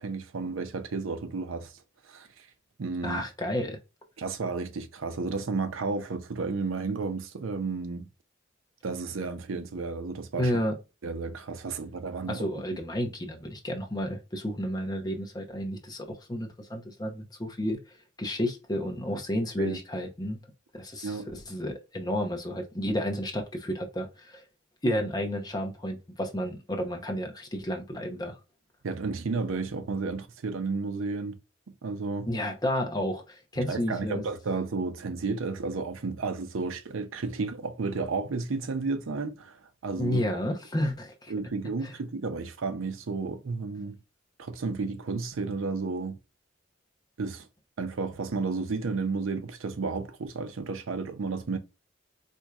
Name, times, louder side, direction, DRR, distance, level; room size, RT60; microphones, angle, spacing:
voice 1, 0.0-1.7 2.0-2.5 2.8-3.2 4.2-8.1 8.8-10.5 11.0-12.5 12.7-12.8 19.6-19.8 21.0-21.3 28.8-31.4 31.8-32.3 33.7-40.4 41.3-44.0 44.4-46.2 47.2-47.5 47.8-51.6, right 4 dB, 90° right, 0.6 m, -32 dB
voice 2, 3.0-3.8 10.4-10.7 12.3-20.4 20.7-24.4 24.8-28.4 32.3-34.2 40.0-41.3 41.8-41.9, equal, 20° left, 0.6 m, -31 dB
4.4 x 2.6 x 2.3 m
head